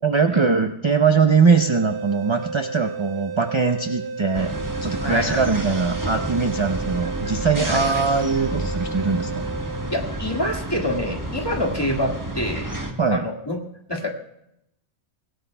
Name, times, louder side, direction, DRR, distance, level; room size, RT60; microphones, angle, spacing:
voice 1, 0.0-4.5 4.8-9.4 13.0-13.2, right 5 dB, 35° right, 6 dB, 0.6 m, -21 dB
sound 1, 1.6-10.5, right 4 dB, 70° right, 1.0 m, -33 dB
sound 2, 4.3-12.9, right 1 dB, 20° right, 1.4 m, -30 dB
voice 2, 5.0-5.4 7.6-7.8 9.9-12.7 13.1-13.6 13.9-14.1, left 1 dB, 20° left, 1 dB, 1.8 m, -26 dB
24.5 x 17.0 x 2.2 m, 0.80 s
omnidirectional pair, 1.1 m